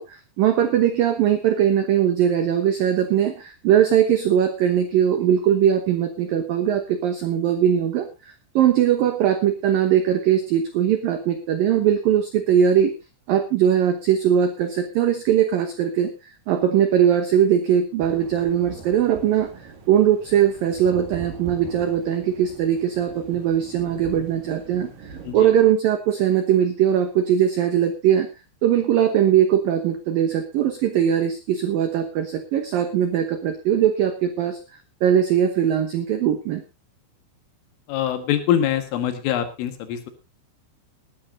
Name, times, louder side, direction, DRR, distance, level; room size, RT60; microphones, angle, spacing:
voice 1, 0.0-12.9 13.3-28.3 28.6-34.6 35.0-36.6, right 9 dB, 90° right, 8 dB, 1.9 m, -20 dB
sound 1, 18.0-25.3, right 5 dB, 50° right, 3.4 m, -41 dB
voice 2, 37.9-40.1, left 10 dB, 75° left, 8 dB, 4.2 m, -24 dB
20.5 x 11.5 x 2.7 m, 0.27 s
omnidirectional pair, 5.9 m